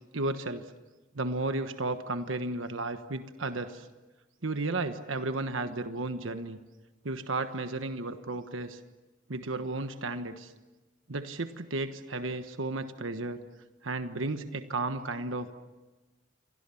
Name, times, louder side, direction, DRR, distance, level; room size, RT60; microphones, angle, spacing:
voice 1, 0.1-0.6 1.1-3.9 4.4-6.6 7.0-8.8 9.3-10.5 11.1-13.4 13.8-15.5, right 2 dB, 80° right, 9 dB, 1.3 m, -33 dB
29.0 x 24.0 x 7.1 m, 1.2 s
head